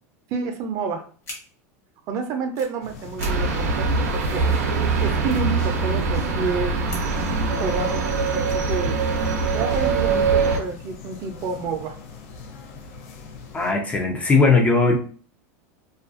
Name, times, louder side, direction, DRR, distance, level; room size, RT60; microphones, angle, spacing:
voice 1, 0.3-1.0 2.1-4.5 5.0-6.8 7.6-9.0 9.5-12.0, right 5 dB, 45° right, 5 dB, 0.5 m, -29 dB
sound 1, 1.2-1.4 2.4-2.7 3.2-3.3 3.6-3.7 3.9-4.5 4.9-5.0 5.2-6.2 6.9-7.4 7.8-8.0 8.4-9.2, left 1 dB, 30° left, 1.0 m, -41 dB
sound 2, 2.8-13.7, left 4 dB, 70° left, 0.6 m, -41 dB
sound 3, 3.2-10.6, right 4 dB, 90° right, 0.6 m, -23 dB
voice 2, 13.5-15.0, left 3 dB, 15° left, 2 dB, 0.4 m, -18 dB
2.4 x 2.3 x 2.5 m, 0.42 s
supercardioid pair, 125°, 8 cm